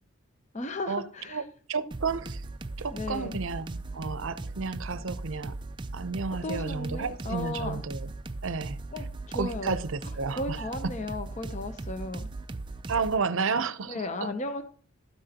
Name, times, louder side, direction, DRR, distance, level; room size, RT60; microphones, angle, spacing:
voice 1, 0.5-1.4 2.9-3.4 6.4-7.8 8.9-9.8 10.4-12.3 13.9-14.6, left 2 dB, 30° left, 0.6 m, -35 dB
voice 2, 1.7-2.4 2.8-5.5 5.9-8.1 8.4-8.8 9.3-10.9 12.9-14.3, right 4 dB, 65° right, 0.6 m, -32 dB
sound 1, 1.9-13.2, right 2 dB, 20° right, 0.4 m, -38 dB
12.5 x 9.0 x 2.8 m
head